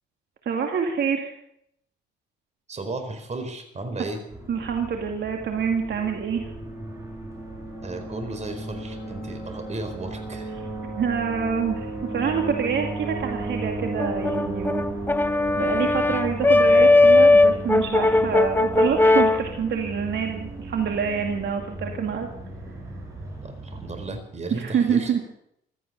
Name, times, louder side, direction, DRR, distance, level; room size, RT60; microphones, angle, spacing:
voice 1, 0.5-1.3 4.5-6.5 10.6-10.7 11.0-14.8 15.6-22.3 24.5-25.2, right 7 dB, 65° right, 3 dB, 2.3 m, -26 dB
voice 2, 2.7-4.2 7.8-10.5 23.4-25.1, right 2 dB, 35° right, 7 dB, 4.4 m, -34 dB
sound 1, 4.3-24.2, right 1 dB, 15° right, 6.8 m, -35 dB
Brass instrument, 14.0-19.5, left 2 dB, 10° left, 0.6 m, -18 dB
16.0 x 13.0 x 6.8 m, 0.73 s
cardioid pair, 90°, 20 cm